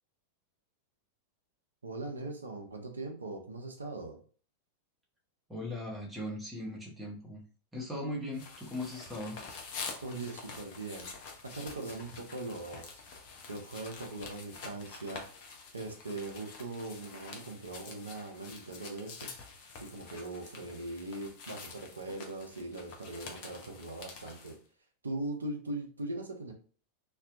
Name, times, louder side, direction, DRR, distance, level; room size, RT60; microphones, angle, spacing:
voice 1, 1.8-4.2 10.0-13.0 13.5-15.2 15.7-19.3 19.8-24.6 25.0-26.5, right 2 dB, 75° right, 3 dB, 0.5 m, -40 dB
voice 2, 5.5-7.4 7.7-9.4, left 1 dB, 5° right, -4 dB, 0.8 m, -39 dB
sound 1, 8.3-24.6, left 4 dB, 45° left, 0.6 m, -47 dB
2.6 x 2.1 x 2.4 m, 0.41 s
figure-of-eight pair, 90°, 0 cm